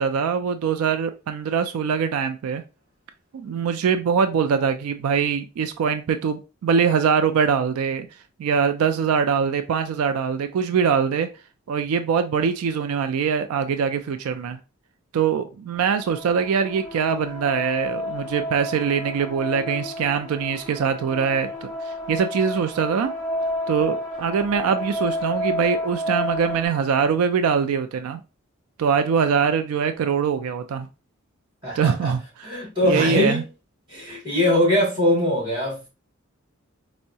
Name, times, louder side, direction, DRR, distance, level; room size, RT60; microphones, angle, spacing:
voice 1, 0.0-2.6 3.3-8.1 8.4-11.3 11.7-14.6 15.1-23.1 23.7-28.2 28.8-30.9 31.7-33.4, right 6 dB, 90° right, 9 dB, 0.3 m, -23 dB
sound 1, 15.8-26.7, left 1 dB, 5° left, 0.8 m, -31 dB
voice 2, 31.6-32.1 32.4-33.4 33.9-35.9, left 1 dB, 25° right, -5 dB, 2.0 m, -22 dB
4.5 x 2.1 x 2.6 m, 0.30 s
head